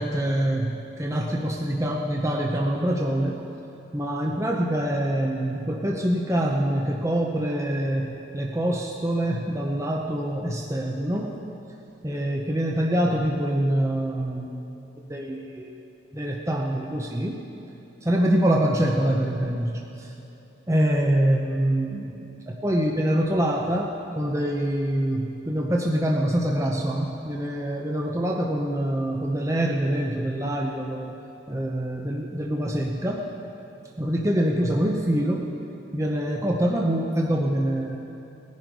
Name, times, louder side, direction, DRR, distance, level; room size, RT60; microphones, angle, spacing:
voice 1, 0.0-3.4 3.9-11.4 12.0-14.5 15.1-15.7 16.1-17.4 18.0-20.1 20.7-31.1 31.5-33.3 34.0-35.5 35.9-38.0, right 1 dB, 15° right, 0 dB, 0.7 m, -25 dB
18.0 x 10.5 x 5.3 m, 2.9 s
head